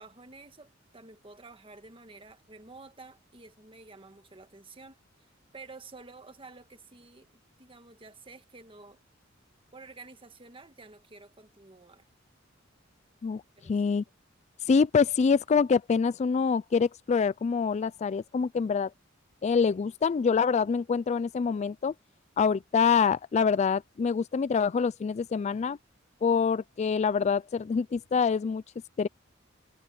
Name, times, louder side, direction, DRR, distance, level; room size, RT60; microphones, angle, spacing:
voice 1, 0.0-5.0 5.5-7.3 7.6-9.0 9.7-12.1 13.6-13.9, right 3 dB, 30° right, 1.5 m, -50 dB
voice 2, 13.2-14.0 14.7-18.9 19.4-21.9 22.4-25.8 26.2-28.6 29.0-29.1, left 5 dB, 35° left, 0.3 m, -25 dB
head